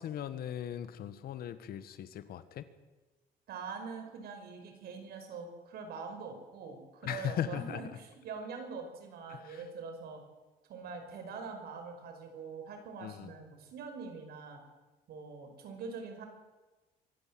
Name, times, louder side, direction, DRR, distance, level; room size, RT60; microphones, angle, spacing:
voice 1, 0.0-2.6 7.0-7.8 9.3-9.7 13.0-13.3, left 10 dB, 65° left, 13 dB, 1.6 m, -38 dB
voice 2, 3.5-10.2 10.7-14.6 15.1-16.2, right 5 dB, 70° right, 5 dB, 5.6 m, -44 dB
24.5 x 15.0 x 7.8 m, 1.2 s
cardioid pair, 110°, 17 cm